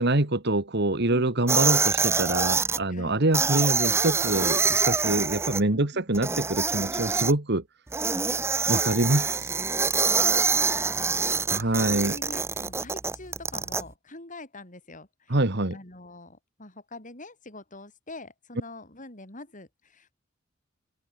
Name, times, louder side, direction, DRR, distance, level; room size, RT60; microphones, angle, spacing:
voice 1, 0.0-7.6 8.7-9.5 11.5-12.2 15.3-15.8, right 2 dB, 60° right, 2.1 m, -25 dB
sound 1, 1.5-2.8 3.3-5.6 6.1-7.3 7.9-13.8, right 4 dB, 15° right, 0.5 m, -25 dB
voice 2, 2.9-3.2 5.7-6.0 10.0-15.4 15.7-20.1, left 2 dB, 40° left, 8.0 m, -44 dB
head